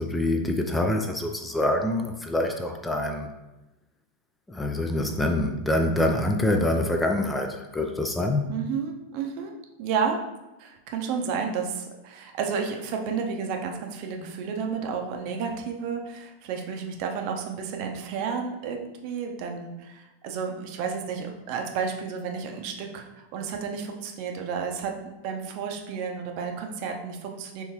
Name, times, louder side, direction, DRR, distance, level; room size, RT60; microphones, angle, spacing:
voice 1, 0.0-3.3 4.5-8.5, left 1 dB, 10° left, 4 dB, 0.4 m, -25 dB
voice 2, 8.5-9.5 9.8-10.2 10.6-24.9 25.2-27.6, right 6 dB, 45° right, 3 dB, 0.6 m, -31 dB
4.5 x 3.6 x 2.8 m, 1.0 s
figure-of-eight pair, 90°, 0 cm